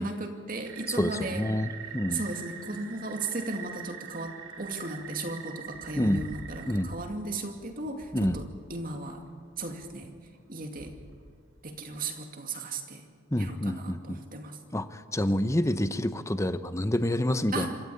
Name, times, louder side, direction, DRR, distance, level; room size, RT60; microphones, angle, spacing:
voice 1, 0.0-1.4 2.1-9.2 9.6-10.1 10.5-10.9 11.6-13.0 13.4-14.6 17.5-17.7, right 2 dB, 45° right, 4 dB, 2.4 m, -36 dB
sound 1, 0.6-12.0, right 6 dB, 85° right, 3.2 m, -44 dB
voice 2, 1.0-2.2 6.0-6.2 6.7-6.9 8.1-8.4 13.3-14.2 14.7-17.7, left 1 dB, 15° left, 11 dB, 0.8 m, -28 dB
27.0 x 13.5 x 8.6 m, 2.2 s
head